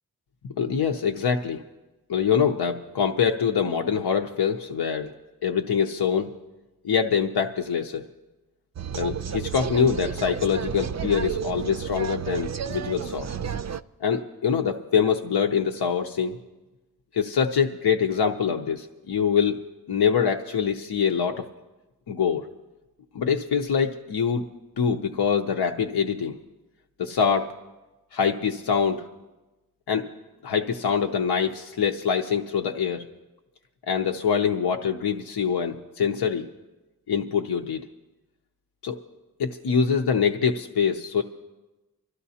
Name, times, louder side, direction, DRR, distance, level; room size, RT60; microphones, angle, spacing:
voice 1, 0.6-1.6 2.1-5.1 5.4-6.3 6.8-8.1 8.9-13.3 14.0-16.4 17.1-19.6 19.9-21.4 22.1-22.5 23.1-24.5 24.8-26.4 27.0-27.5 28.1-29.1 29.9-30.1 30.4-33.1 33.9-36.4 37.1-37.8 38.8-39.0 39.4-41.2, left 7 dB, 80° left, 3 dB, 0.7 m, -24 dB
sound 1, 8.8-13.8, right 8 dB, 45° right, 0.4 m, -31 dB
25.5 x 13.0 x 2.8 m, 1.1 s
cardioid pair, 50°, 39 cm